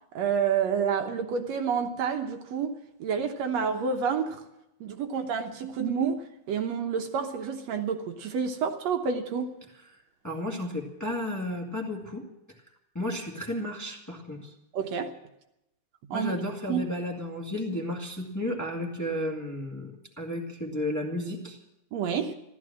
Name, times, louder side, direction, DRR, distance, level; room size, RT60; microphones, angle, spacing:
voice 1, 0.1-4.4 4.8-9.5 14.7-15.1 16.1-16.4 16.7-16.8 21.9-22.3, right 6 dB, 70° right, 2.1 m, -29 dB
voice 2, 10.2-12.2 12.9-14.5 16.1-21.6, left 1 dB, 5° left, 1.6 m, -33 dB
15.0 x 13.0 x 7.4 m
omnidirectional pair, 3.3 m